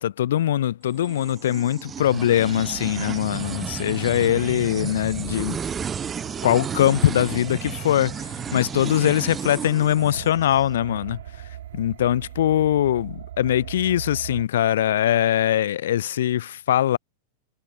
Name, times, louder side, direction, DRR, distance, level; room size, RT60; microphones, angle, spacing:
voice 1, 0.0-5.6 6.4-11.2 11.7-17.0, left 11 dB, 60° left, 0.5 m, -22 dB
sound 1, 1.0-10.7, right 7 dB, 20° right, 1.2 m, -33 dB
sound 2, 2.4-14.4, right 12 dB, 60° right, 7.3 m, -40 dB
figure-of-eight pair, 90°, 0 cm